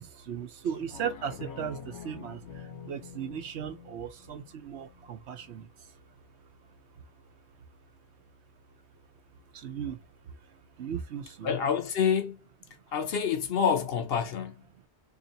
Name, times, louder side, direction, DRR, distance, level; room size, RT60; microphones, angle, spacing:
voice 1, 0.0-6.0 6.9-7.0 9.5-11.5, right 8 dB, 70° right, 1.0 m, -37 dB
sound 1, 0.7-5.7 6.1-6.2, left 7 dB, 90° left, 1.1 m, -47 dB
voice 2, 11.4-12.4 12.9-14.6, left 7 dB, 65° left, 0.8 m, -27 dB
3.0 x 2.7 x 3.9 m
omnidirectional pair, 1.2 m